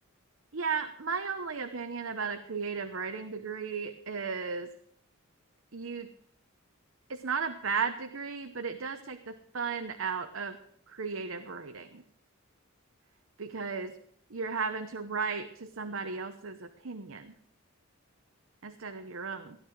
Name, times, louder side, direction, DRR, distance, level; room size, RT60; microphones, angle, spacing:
voice 1, 0.5-4.7 5.7-6.1 7.1-10.6 10.9-12.0 13.4-14.0 14.3-17.3 18.6-19.6, right 5 dB, 75° right, 8 dB, 0.9 m, -35 dB
16.5 x 11.0 x 4.7 m, 0.66 s
head